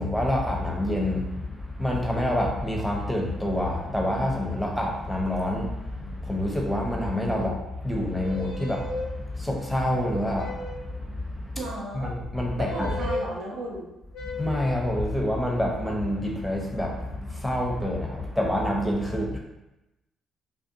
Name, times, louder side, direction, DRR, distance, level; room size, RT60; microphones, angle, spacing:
voice 1, 0.0-7.5 7.8-11.5 11.9-12.9 14.4-19.4, left 1 dB, ahead, -1 dB, 0.7 m, -27 dB
sound 1, 8.2-9.1 10.3-10.9 12.6-13.3 14.1-14.8, left 1 dB, 60° left, 0.5 m, -35 dB
voice 2, 11.5-12.1 12.6-13.9 19.1-19.4, right 1 dB, 65° right, -2 dB, 0.6 m, -35 dB
2.5 x 2.3 x 2.6 m, 0.96 s
hypercardioid pair, 45°, 0 cm